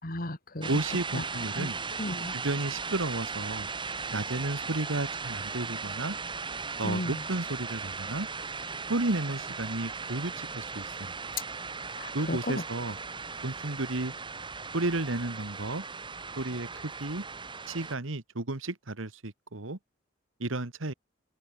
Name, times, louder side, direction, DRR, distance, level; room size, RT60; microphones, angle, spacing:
voice 1, 0.0-0.7 1.1-1.2 1.6-1.7 2.0-2.3 6.8-7.2 11.9-12.6, left 1 dB, 45° left, 3.1 m, -34 dB
sound 1, 0.6-18.0, right 4 dB, 25° right, 2.2 m, -37 dB
voice 2, 0.7-1.8 2.3-3.7 4.1-6.2 6.8-8.3 8.9-11.2 12.1-13.0 13.4-14.1 14.7-15.8 16.4-17.2 17.7-19.8 20.4-20.9, right 2 dB, 90° right, 1.8 m, -32 dB
head